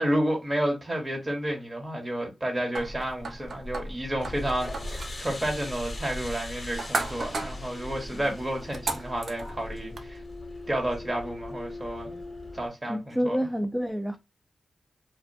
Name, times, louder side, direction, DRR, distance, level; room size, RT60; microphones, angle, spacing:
voice 1, 0.0-10.2 10.7-12.2 12.5-13.4, right 1 dB, 30° right, 1.0 m, -31 dB
sound 1, 2.7-10.1, right 2 dB, 65° right, 0.6 m, -37 dB
sound 2, 4.2-12.7, left 2 dB, 45° left, 0.7 m, -40 dB
voice 2, 12.9-14.2, equal, ahead, 0.4 m, -28 dB
2.5 x 2.1 x 2.5 m
cardioid pair, 50°, 0 cm